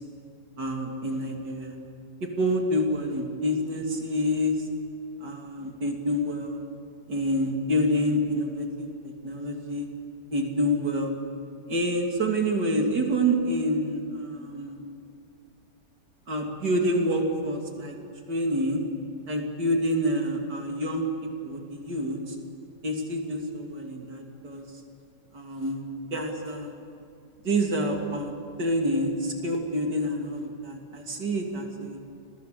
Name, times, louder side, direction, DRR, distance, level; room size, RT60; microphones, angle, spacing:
voice 1, 0.6-1.8 2.4-4.7 5.2-6.6 7.1-9.9 10.3-11.2 11.7-14.8 16.3-18.0 18.3-18.8 19.3-21.0 21.4-22.4 22.8-24.7 25.3-25.8 26.1-26.8 27.4-28.3 28.6-32.0, equal, 85° right, 1 dB, 3.5 m, -27 dB
30.0 x 23.5 x 6.9 m, 2.4 s
omnidirectional pair, 1.8 m